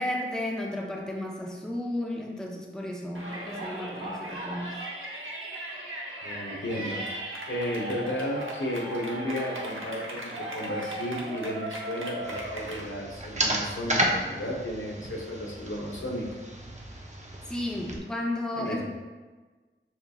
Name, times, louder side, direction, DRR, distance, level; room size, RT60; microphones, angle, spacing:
voice 1, 0.0-4.7 17.5-18.9, left 1 dB, 5° left, -1 dB, 0.6 m, -33 dB
Yell, 3.2-12.8, right 1 dB, 85° right, 0.8 m, -37 dB
voice 2, 6.2-7.1 7.5-16.3 18.5-18.8, left 1 dB, 75° left, -2 dB, 0.8 m, -33 dB
sound 1, 12.2-18.0, right 1 dB, 35° right, 0.6 m, -32 dB
7.1 x 2.7 x 2.3 m, 1.3 s
wide cardioid pair, 50°, 20 cm